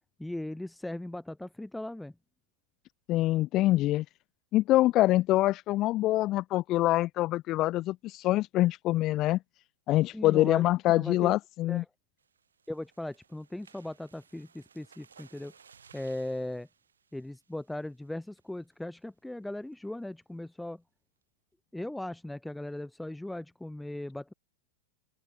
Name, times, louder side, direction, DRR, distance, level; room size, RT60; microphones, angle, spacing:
voice 1, 0.2-2.1 10.1-10.6 10.9-11.4 11.7-11.8 12.7-15.5 15.9-16.7 17.1-20.8 21.7-24.3, left 1 dB, 5° left, 2.0 m, -38 dB
voice 2, 3.1-4.1 4.5-9.4 9.9-11.8, left 16 dB, 40° left, 0.5 m, -25 dB
sound 1, 12.2-18.0 18.4-18.6 19.0-19.1 19.4-19.7, right 6 dB, 85° right, 4.3 m, -60 dB
open air
hypercardioid pair, 105°, 0 cm